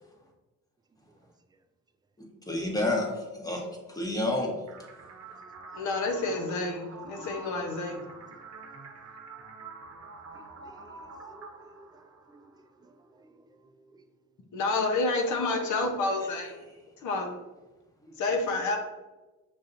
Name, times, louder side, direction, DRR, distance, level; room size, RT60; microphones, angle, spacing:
voice 1, 2.5-4.5 15.3-15.4 16.2-16.3 18.0-18.1, left 2 dB, 10° left, 0 dB, 1.1 m, -30 dB
sound 1, 4.7-12.6, right 3 dB, 55° right, 0.8 m, -47 dB
voice 2, 5.7-8.0 14.5-16.6 17.0-17.3 18.2-18.8, left 3 dB, 75° left, 3 dB, 0.9 m, -29 dB
voice 3, 10.3-12.5 12.9-13.3 13.9-14.0, right 2 dB, 15° right, 7 dB, 0.4 m, -56 dB
6.6 x 2.7 x 2.6 m, 1.1 s
cardioid pair, 90°, 30 cm